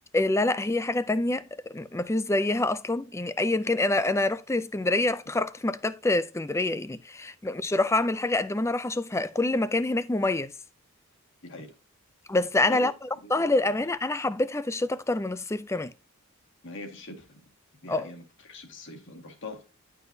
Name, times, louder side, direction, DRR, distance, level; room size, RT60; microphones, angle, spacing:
voice 1, 0.1-10.5 12.3-12.9 13.3-15.9 17.9-18.1, left 2 dB, 15° left, 0.4 m, -26 dB
voice 2, 11.4-11.7 12.7-12.9 13.2-13.9 16.6-17.4 17.8-19.6, left 2 dB, 55° left, 1.9 m, -43 dB
11.0 x 6.0 x 2.7 m
head